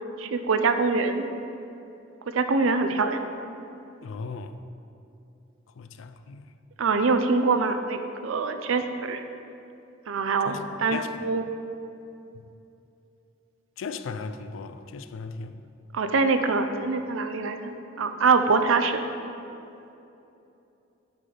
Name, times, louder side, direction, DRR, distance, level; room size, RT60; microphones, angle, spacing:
voice 1, 0.2-1.3 2.3-3.2 6.8-9.2 10.1-11.4 15.9-17.7 18.0-19.1, right 4 dB, 75° right, 0.5 m, -24 dB
voice 2, 4.0-4.6 5.8-6.5 10.5-10.6 10.9-11.1 13.8-15.6, left 4 dB, 70° left, 0.4 m, -36 dB
12.0 x 4.0 x 3.3 m
head